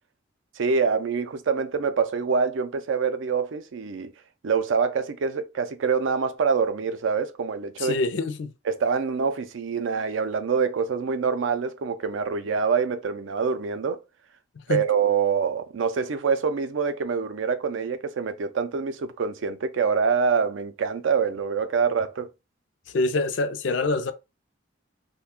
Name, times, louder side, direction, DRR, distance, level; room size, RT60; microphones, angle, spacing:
voice 1, 0.6-4.1 4.4-8.0 8.7-14.0 14.7-22.3, right 5 dB, 85° right, 0.4 m, -25 dB
voice 2, 7.8-8.5 14.7-14.8 22.9-24.1, left 3 dB, 70° left, 0.4 m, -25 dB
2.4 x 2.2 x 3.5 m
head